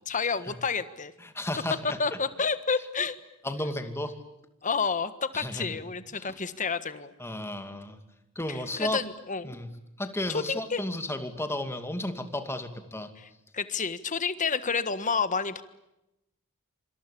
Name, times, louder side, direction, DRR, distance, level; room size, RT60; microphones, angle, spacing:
voice 1, 0.1-1.1 2.0-3.2 4.6-7.1 8.5-9.5 10.3-10.8 13.2-13.3 13.5-15.6, left 5 dB, 35° left, 12 dB, 1.5 m, -30 dB
voice 2, 1.2-2.0 3.4-4.2 5.3-5.8 6.1-6.4 7.2-8.0 8.4-9.0 9.4-9.7 10.0-13.1, left 1 dB, 10° left, 7 dB, 2.5 m, -33 dB
26.5 x 26.0 x 8.6 m, 0.89 s
head